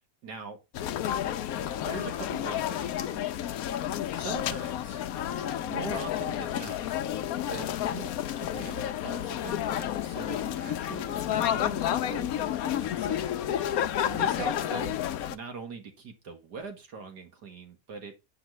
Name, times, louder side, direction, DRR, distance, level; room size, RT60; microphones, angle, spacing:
voice 1, 0.2-0.6 1.7-3.2 4.1-5.0 5.7-6.8 7.4-8.1 8.4-13.2 14.0-15.0 15.3-18.1, right 4 dB, 80° right, 2.1 m, -42 dB
sound 1, 0.7-15.4, left 11 dB, 70° left, 1.0 m, -30 dB
8.1 x 5.8 x 3.0 m
omnidirectional pair, 1.8 m